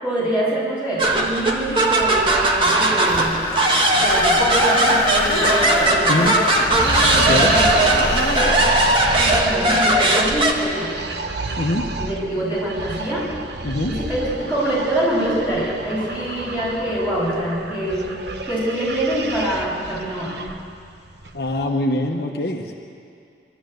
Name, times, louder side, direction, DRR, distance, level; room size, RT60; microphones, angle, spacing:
voice 1, 0.0-3.5 3.9-6.3 7.3-8.6 9.2-11.0 12.0-13.3 13.9-18.1 18.4-20.4, right 1 dB, 10° right, -8 dB, 7.5 m, -25 dB
sound 1, 1.0-10.5, right 2 dB, 30° right, 1.6 m, -18 dB
sound 2, 2.0-21.7, right 2 dB, 70° right, 1.2 m, -29 dB
Screech, 3.0-8.6, left 3 dB, 25° left, 2.0 m, -25 dB
voice 2, 6.1-6.4 7.1-7.6 11.6-11.9 13.6-13.9 21.3-22.7, left 1 dB, 55° left, 1 dB, 1.3 m, -23 dB
23.5 x 13.0 x 9.3 m, 2.4 s
head